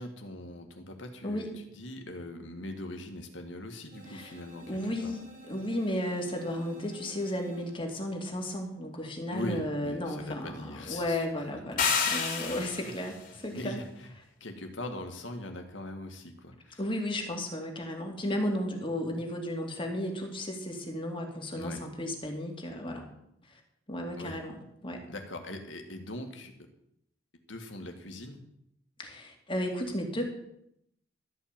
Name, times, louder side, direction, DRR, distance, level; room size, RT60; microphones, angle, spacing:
voice 1, 0.0-5.1 9.3-11.3 12.7-12.9 13.3-14.1 14.4-16.8 21.6-21.8 24.2-24.4 25.1-26.5 27.5-28.4, left 1 dB, 80° left, 5 dB, 1.9 m, -41 dB
sound 1, 3.9-8.1, right 3 dB, 50° right, 4.9 m, -52 dB
voice 2, 4.7-10.6 10.9-13.8 16.8-23.0 23.9-25.0 29.0-30.3, left 1 dB, 30° left, 2 dB, 2.1 m, -34 dB
sound 2, 11.8-13.0, left 6 dB, 50° left, 2.8 m, -28 dB
13.5 x 5.5 x 8.9 m, 0.77 s
head